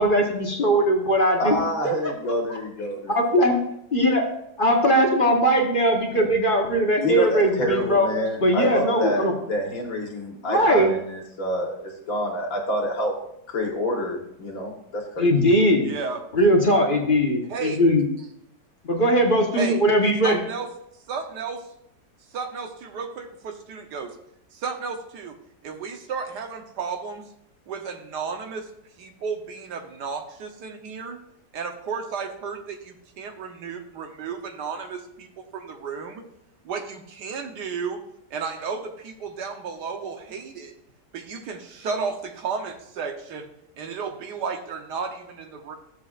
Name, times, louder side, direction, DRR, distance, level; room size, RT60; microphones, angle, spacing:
voice 1, 0.0-1.6 1.8-2.1 2.5-3.6 3.9-4.2 4.6-8.1 8.4-9.3 10.5-10.9 15.2-15.9 16.3-18.1 18.8-20.4, equal, 35° left, 0 dB, 1.3 m, -20 dB
voice 2, 1.4-3.1 7.0-13.1 13.5-15.3, left 1 dB, 55° left, 0 dB, 2.0 m, -27 dB
voice 3, 15.8-16.2 17.5-17.8 19.5-19.8 20.2-20.7 21.1-21.6 22.3-24.1 24.5-25.4 25.6-27.2 27.7-28.7 29.0-31.2 31.5-36.2 36.6-38.0 38.3-40.7 41.1-43.5 43.8-45.8, right 5 dB, 80° right, 5 dB, 1.5 m, -33 dB
13.0 x 7.4 x 2.5 m, 0.76 s
omnidirectional pair, 1.8 m